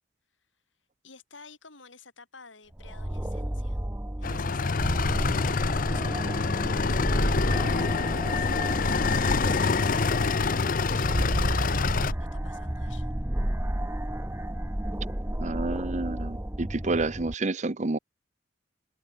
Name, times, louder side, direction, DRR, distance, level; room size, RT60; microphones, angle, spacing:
voice 1, 1.0-3.8 4.2-9.6 10.4-13.1, left 4 dB, 85° left, 7.2 m, -51 dB
sound 1, 2.8-17.3, right 1 dB, 15° right, 0.9 m, -31 dB
sound 2, 4.2-12.1, left 4 dB, 50° left, 0.6 m, -26 dB
sound 3, 5.6-12.1, equal, 10° left, 5.6 m, -48 dB
voice 2, 15.4-18.0, right 2 dB, 40° right, 0.9 m, -29 dB
head